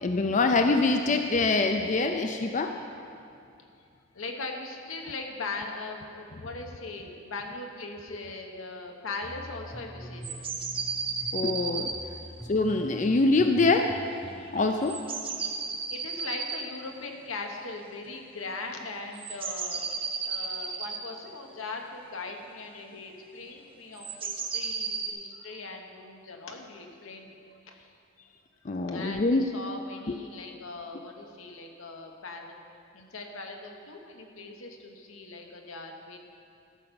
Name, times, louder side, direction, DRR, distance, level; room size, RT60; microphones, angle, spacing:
voice 1, 0.0-2.7 11.3-11.9 12.5-13.9 14.5-15.0 28.7-29.4 30.1-30.2, left 3 dB, 40° left, 5 dB, 0.4 m, -24 dB
voice 2, 4.1-10.5 12.0-12.3 15.6-27.3 27.6-27.8 28.7-32.6 32.9-36.2, left 3 dB, 85° left, 3 dB, 1.2 m, -40 dB
sound 1, 9.2-14.5, right 1 dB, ahead, 0.9 m, -44 dB
sound 2, 10.2-12.0 14.5-16.6 17.2-17.3 19.1-21.0 24.0-25.1, right 5 dB, 25° right, 0.7 m, -33 dB
13.5 x 5.7 x 6.9 m, 2.5 s
head